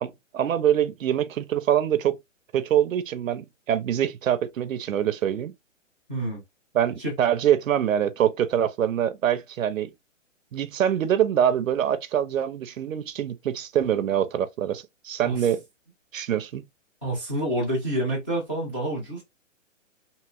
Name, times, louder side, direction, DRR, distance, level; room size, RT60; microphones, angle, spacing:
voice 1, 0.0-2.2 2.5-5.5 6.7-9.9 10.5-15.6 16.1-16.6, right 10 dB, 90° right, 0.6 m, -24 dB
voice 2, 6.1-6.4 7.0-7.1 15.2-15.4 17.0-19.2, right 1 dB, 10° left, 0.5 m, -28 dB
2.9 x 2.8 x 2.3 m
hypercardioid pair, 165°, 38 cm